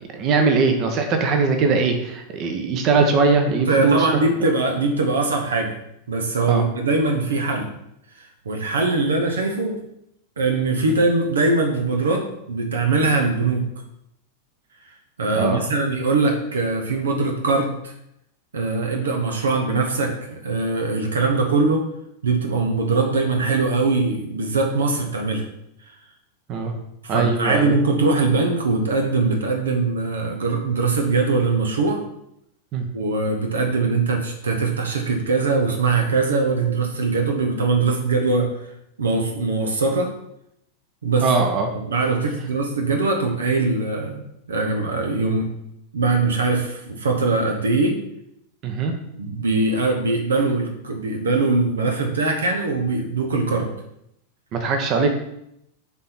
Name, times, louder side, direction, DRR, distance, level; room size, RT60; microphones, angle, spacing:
voice 1, 0.1-4.1 6.5-6.6 15.4-15.6 26.5-26.7 27.1-27.8 32.7-32.9 41.2-41.7 48.6-48.9 54.5-55.1, right 4 dB, 35° right, 5 dB, 1.1 m, -20 dB
voice 2, 3.5-5.8 6.1-7.7 8.2-9.8 10.4-13.7 15.2-17.9 18.5-21.9 22.2-25.4 27.0-32.0 32.9-38.5 39.0-40.1 41.0-41.3 41.8-45.5 45.9-48.0 49.2-53.7, right 3 dB, 70° right, 3 dB, 1.0 m, -22 dB
7.4 x 4.2 x 6.0 m, 0.78 s
figure-of-eight pair, 90°, 0 cm